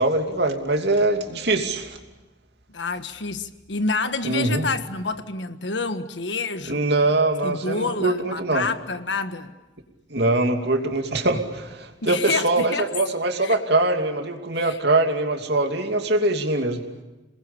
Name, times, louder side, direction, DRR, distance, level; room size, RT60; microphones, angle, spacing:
voice 1, 0.0-2.0 4.2-4.6 6.7-8.6 10.1-16.8, right 2 dB, 60° right, 2.8 m, -23 dB
voice 2, 2.7-7.1 7.4-9.5 12.0-12.9 13.4-13.6 14.5-14.8, left 3 dB, 70° left, 1.5 m, -28 dB
28.5 x 21.0 x 8.7 m
head